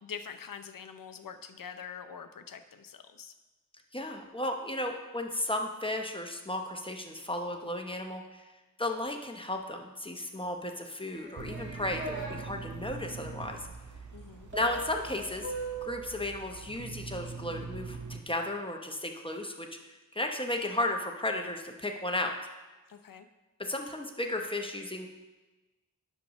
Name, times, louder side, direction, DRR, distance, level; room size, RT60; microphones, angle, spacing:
voice 1, 0.0-3.3 14.1-14.5 22.9-23.3, left 7 dB, 75° left, 9 dB, 0.6 m, -44 dB
voice 2, 3.9-8.5 8.8-13.7 14.5-15.5 15.8-22.3 23.6-25.1, left 1 dB, 15° left, 3 dB, 0.9 m, -34 dB
sound 1, 11.1-12.3 14.5-16.1, right 2 dB, 35° right, 2.1 m, -39 dB
sound 2, 11.4-18.2, right 4 dB, 60° right, 0.8 m, -43 dB
10.0 x 6.3 x 3.1 m, 1.2 s
wide cardioid pair, 65°, 33 cm